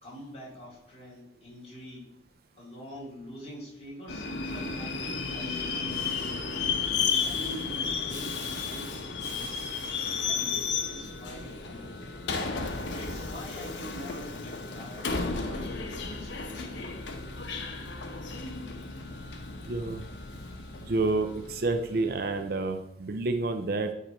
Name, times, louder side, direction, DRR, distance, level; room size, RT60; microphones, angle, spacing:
voice 1, 0.0-2.1 2.6-5.9 6.6-9.0 9.3-9.7 10.2-11.9 12.9-16.9, equal, 35° left, -5 dB, 2.4 m, -45 dB
Subway metro underground, 4.1-22.5, left 5 dB, 85° left, 0.8 m, -33 dB
voice 2, 19.6-20.0 20.8-23.9, right 3 dB, 55° right, 8 dB, 0.5 m, -29 dB
8.8 x 3.3 x 4.3 m, 0.78 s
head